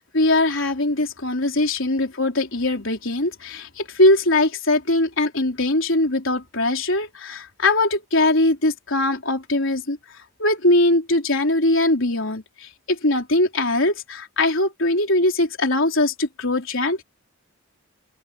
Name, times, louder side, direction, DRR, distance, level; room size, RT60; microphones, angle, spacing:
voice 1, 0.0-10.0 10.4-17.0, left 2 dB, 65° left, 4.1 m, -21 dB
head